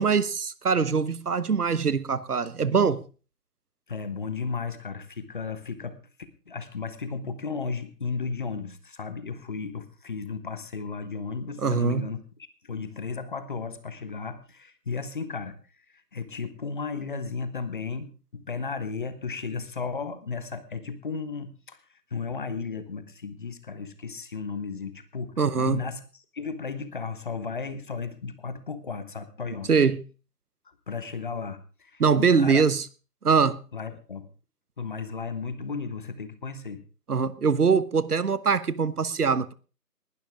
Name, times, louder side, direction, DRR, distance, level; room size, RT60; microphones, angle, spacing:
voice 1, 0.0-3.0 11.6-12.1 25.4-25.8 29.7-30.0 32.0-32.9 33.2-33.6 37.1-39.5, right 5 dB, 65° right, 1.2 m, -23 dB
voice 2, 3.9-6.0 6.5-12.2 12.6-15.6 16.1-21.8 22.1-26.0 26.3-29.7 30.9-32.6 33.7-34.3 34.8-36.8, left 5 dB, 30° left, 1.3 m, -34 dB
19.5 x 12.0 x 3.6 m
figure-of-eight pair, 160°, 49 cm